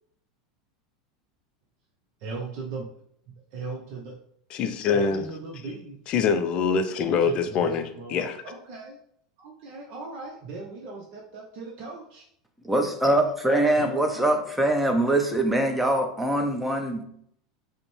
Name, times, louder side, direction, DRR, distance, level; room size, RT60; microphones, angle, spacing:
voice 1, 2.2-2.9 3.5-4.1 4.9-6.0 7.1-8.2 8.4-9.0 9.4-12.3 13.8-14.3, right 3 dB, 55° right, -1 dB, 0.7 m, -38 dB
voice 2, 4.5-5.3 6.1-8.4, left 5 dB, 45° left, 8 dB, 0.4 m, -24 dB
voice 3, 12.6-17.1, right 1 dB, 5° right, 5 dB, 0.7 m, -23 dB
5.0 x 2.1 x 3.2 m, 0.67 s
hypercardioid pair, 85°, 2 cm